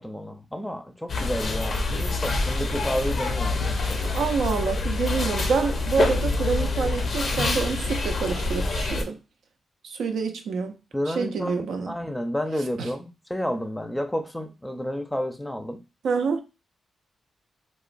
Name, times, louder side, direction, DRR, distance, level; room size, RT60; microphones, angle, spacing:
voice 1, 0.0-4.1 10.9-15.8, equal, 10° left, 0.5 m, -31 dB
sound 1, 1.1-9.0, left 3 dB, 65° left, 0.5 m, -26 dB
voice 2, 4.1-9.2 9.8-10.8 11.1-11.9 12.8-12.9 16.0-16.4, right 5 dB, 85° right, 0.4 m, -27 dB
2.9 x 2.1 x 2.5 m
cardioid pair, 65°, 0 cm